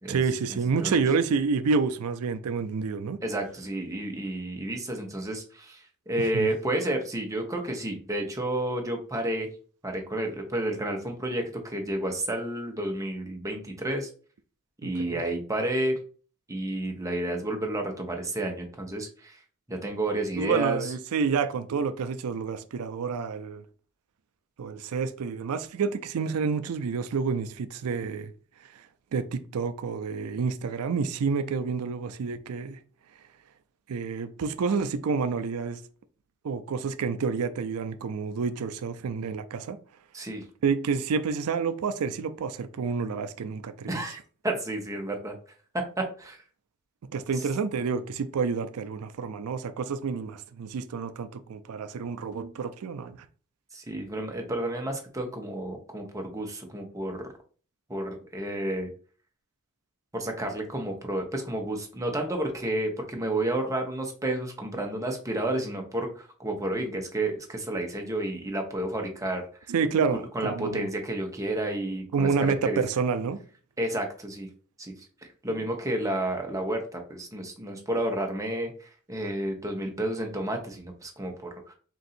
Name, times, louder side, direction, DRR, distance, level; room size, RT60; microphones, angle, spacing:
voice 1, 0.1-3.2 6.2-6.5 14.8-15.2 20.4-23.6 24.6-28.3 29.1-32.8 33.9-35.8 36.4-39.8 40.6-44.0 47.1-53.3 69.7-70.9 72.1-73.4 75.5-75.6, right 5 dB, 80° right, 0.4 m, -29 dB
voice 2, 3.2-9.5 9.8-14.1 14.8-15.9 16.5-19.4 19.7-20.9 40.1-40.4 43.9-44.2 44.4-45.3 45.7-46.4 53.7-57.3 57.9-58.9 60.1-69.7 70.1-72.8 73.8-74.5 74.8-74.9 75.4-81.7, right 1 dB, 15° right, 0.8 m, -31 dB
3.8 x 2.6 x 4.1 m
head